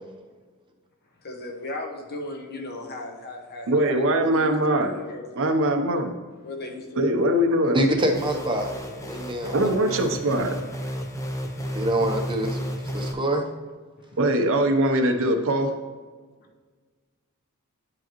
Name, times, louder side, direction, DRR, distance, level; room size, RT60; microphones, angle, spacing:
voice 1, 1.2-4.5 4.8-5.5 6.4-7.1 7.6-8.7 14.0-14.2, left 2 dB, 45° left, 1 dB, 1.1 m, -36 dB
voice 2, 3.7-4.9 5.4-6.1 7.0-7.8 9.5-10.6 14.2-15.7, right 1 dB, 65° right, 5 dB, 0.8 m, -22 dB
voice 3, 7.7-8.7 9.0-10.0 11.7-12.6 12.9-13.5, right 1 dB, 20° right, 2 dB, 0.8 m, -25 dB
sound 1, 8.0-13.1, equal, 15° left, 0.6 m, -33 dB
10.5 x 4.8 x 3.0 m, 1.4 s
head